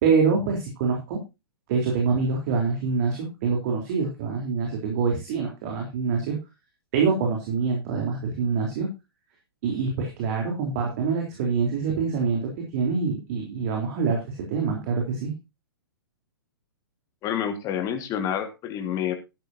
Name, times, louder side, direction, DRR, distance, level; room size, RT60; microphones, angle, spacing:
voice 1, 0.0-1.2 1.7-6.4 6.9-8.9 9.6-15.3, right 5 dB, 40° right, 1 dB, 3.7 m, -25 dB
voice 2, 17.2-19.2, left 9 dB, 25° left, 7 dB, 1.9 m, -28 dB
13.0 x 11.5 x 2.8 m, 0.26 s
figure-of-eight pair, 115°, 13 cm